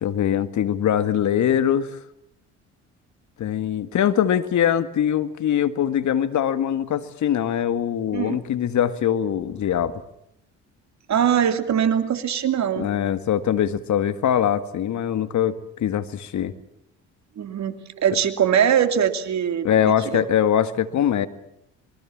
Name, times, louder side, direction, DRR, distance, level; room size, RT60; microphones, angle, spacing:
voice 1, 0.0-2.0 3.4-10.0 12.8-16.5 19.6-21.3, left 9 dB, 55° left, 12 dB, 1.8 m, -22 dB
voice 2, 11.1-12.9 17.4-19.7 20.1-20.3, right 8 dB, 50° right, 9 dB, 2.7 m, -22 dB
26.5 x 22.5 x 7.3 m, 0.74 s
hypercardioid pair, 65°, 35 cm